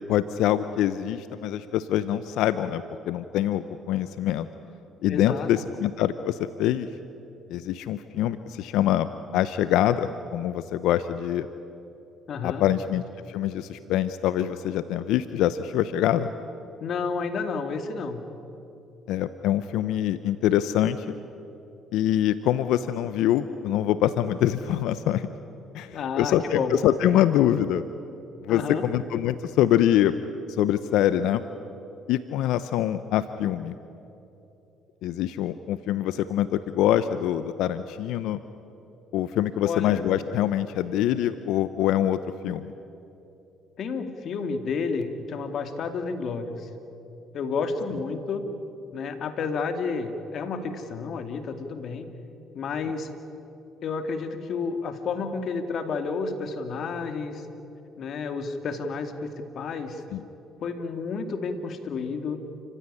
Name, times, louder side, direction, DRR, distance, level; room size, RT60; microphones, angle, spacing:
voice 1, 0.1-4.5 5.0-6.9 7.5-9.1 9.3-11.5 12.4-13.0 13.3-16.3 19.1-21.1 21.9-25.3 25.7-27.9 28.4-30.2 30.6-31.4 32.1-33.7 35.0-38.4 39.1-42.7 60.1-60.2, left 11 dB, 75° left, 13 dB, 0.7 m, -24 dB
voice 2, 5.1-5.5 12.3-12.6 16.8-18.2 25.8-26.7 28.5-28.9 39.6-40.0 43.8-46.7 47.3-48.4 48.9-52.1 52.5-53.1 53.8-57.4 58.0-60.0 60.6-62.4, left 5 dB, 60° left, 7 dB, 2.5 m, -31 dB
29.5 x 15.5 x 9.9 m, 2.9 s
supercardioid pair, 70°, 0 cm